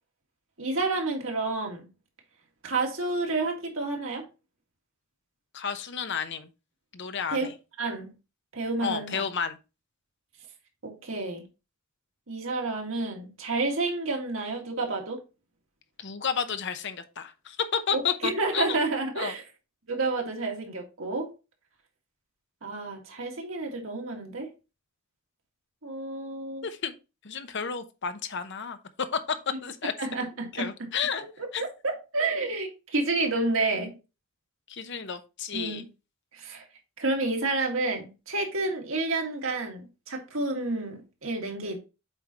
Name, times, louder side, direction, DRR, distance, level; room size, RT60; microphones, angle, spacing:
voice 1, 0.6-1.9 2.6-4.3 7.3-7.5 7.8-8.1 8.5-9.2 10.8-11.4 12.3-15.2 17.9-19.4 19.9-21.3 22.6-24.5 25.8-26.6 30.0-30.9 31.2-33.9 35.5-35.9 36.3-36.6 37.0-41.8, right 3 dB, 70° right, 2.0 m, -30 dB
voice 2, 5.5-6.5 6.9-7.5 8.8-9.6 16.0-18.6 19.2-19.3 26.6-26.9 27.2-28.8 29.3-29.4 29.6-29.9 30.5-31.2 31.5-31.6 34.7-35.8, left 6 dB, 55° left, 0.8 m, -31 dB
7.7 x 5.0 x 2.9 m
head